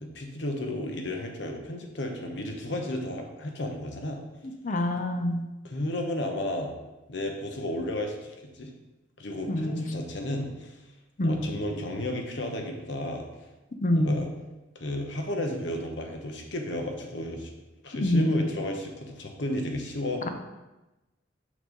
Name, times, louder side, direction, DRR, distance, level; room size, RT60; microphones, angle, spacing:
voice 1, 0.0-4.2 5.6-6.7 7.1-8.7 9.2-10.8 11.2-13.3 13.9-14.3 14.8-17.5 17.8-20.2, left 1 dB, 65° left, 3 dB, 1.0 m, -33 dB
voice 2, 4.6-5.4 9.5-9.8 11.2-11.4 13.8-14.2 18.0-18.4 20.2-20.3, left 1 dB, 40° left, 6 dB, 0.6 m, -25 dB
6.2 x 5.5 x 3.9 m, 1.0 s
head